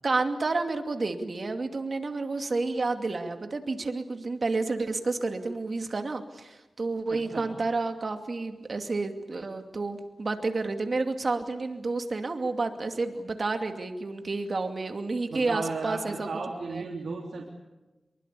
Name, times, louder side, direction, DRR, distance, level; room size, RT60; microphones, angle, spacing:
voice 1, 0.0-16.3 16.7-16.8, right 3 dB, 55° right, 6 dB, 2.6 m, -30 dB
voice 2, 7.1-7.4 15.3-17.5, right 3 dB, 85° right, -2 dB, 3.5 m, -35 dB
25.5 x 23.0 x 8.5 m, 1.1 s
wide cardioid pair, 70°, 0 cm